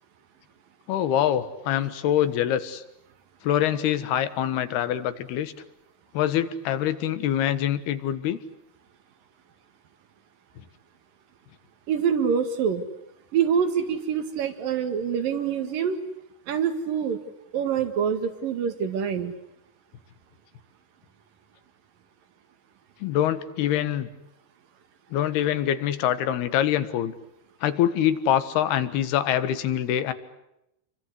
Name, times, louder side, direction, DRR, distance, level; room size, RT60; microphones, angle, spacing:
voice 1, 0.9-2.8 3.4-5.5 6.1-8.4 23.0-24.1 25.1-27.2 27.6-30.1, left 11 dB, 80° left, 13 dB, 3.5 m, -24 dB
voice 2, 11.9-12.8 13.3-16.0 16.5-17.2 17.5-19.3, right 7 dB, 65° right, 9 dB, 3.7 m, -25 dB
29.0 x 23.5 x 8.3 m, 0.85 s
omnidirectional pair, 4.5 m